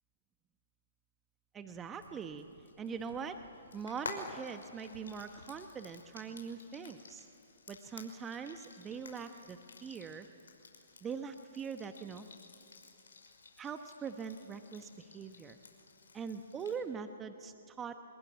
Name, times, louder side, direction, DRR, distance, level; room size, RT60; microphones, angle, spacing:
voice 1, 1.5-2.4 2.8-3.4 3.7-7.3 7.7-10.3 11.0-12.3 13.6-15.6 16.1-18.0, right 6 dB, 15° right, 8 dB, 1.0 m, -42 dB
Frying (food), 1.9-16.8, left 4 dB, 80° left, 5.7 m, -52 dB
27.0 x 21.5 x 9.3 m, 2.8 s
hypercardioid pair, 140°, 0 cm